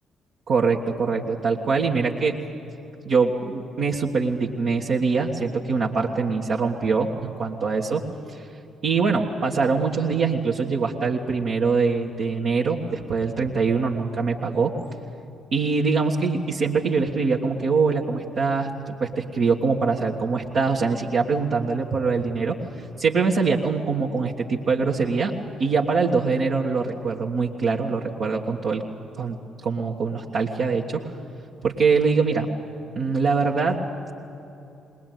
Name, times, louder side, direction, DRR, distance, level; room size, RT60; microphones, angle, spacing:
voice 1, 0.5-2.4 3.0-8.0 8.3-8.4 8.8-14.7 15.5-22.6 23.0-25.3 25.6-28.8 29.1-29.4 29.6-31.1 31.6-32.5 32.9-33.8, right 4 dB, 60° right, -4 dB, 1.5 m, -23 dB
20.5 x 20.0 x 9.2 m, 2.9 s
hypercardioid pair, 45°, 0 cm